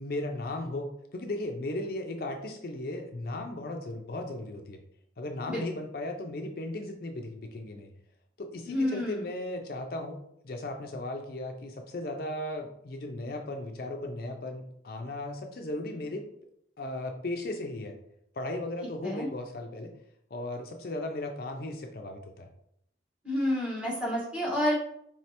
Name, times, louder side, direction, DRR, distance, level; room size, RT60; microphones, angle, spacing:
voice 1, 0.0-4.8 5.2-7.9 8.4-10.2 10.4-16.2 16.8-17.9 18.3-19.9 20.3-22.5, left 1 dB, 55° left, 3 dB, 0.5 m, -36 dB
voice 2, 8.7-9.2 19.0-19.3 23.2-24.7, left 1 dB, 5° right, -5 dB, 1.3 m, -29 dB
4.7 x 3.2 x 2.9 m, 0.73 s
head